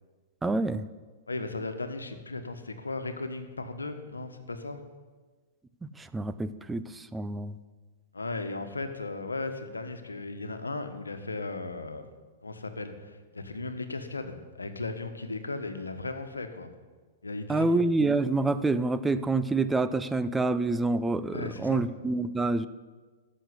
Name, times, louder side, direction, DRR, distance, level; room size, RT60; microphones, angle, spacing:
voice 1, 0.4-0.9 5.8-7.6 17.5-22.7, right 3 dB, 10° right, 12 dB, 0.6 m, -27 dB
voice 2, 1.3-4.8 8.1-12.1 12.4-16.7 17.2-17.9 21.3-21.8, left 3 dB, 85° left, 8 dB, 1.3 m, -36 dB
13.5 x 6.5 x 9.5 m, 1.4 s
figure-of-eight pair, 110°, 0 cm